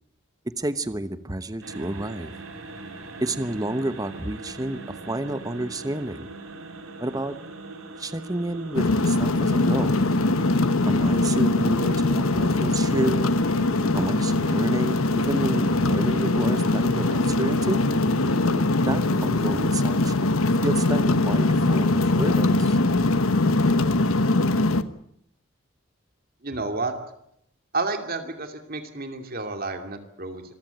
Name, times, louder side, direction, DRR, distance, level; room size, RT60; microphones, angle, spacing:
voice 1, 0.4-2.4 3.2-6.3 7.0-7.4 8.0-9.9 10.9-13.2 13.9-17.9 18.9-20.3 20.6-22.8, right 1 dB, 15° right, 12 dB, 1.0 m, -30 dB
sound 1, 1.6-19.0, right 2 dB, 80° right, 4.5 m, -40 dB
sound 2, 8.7-24.8, left 2 dB, 80° left, 1.2 m, -22 dB
voice 2, 26.4-26.9 27.7-30.4, right 3 dB, 45° right, 6 dB, 2.6 m, -30 dB
26.0 x 15.5 x 9.1 m, 0.73 s
head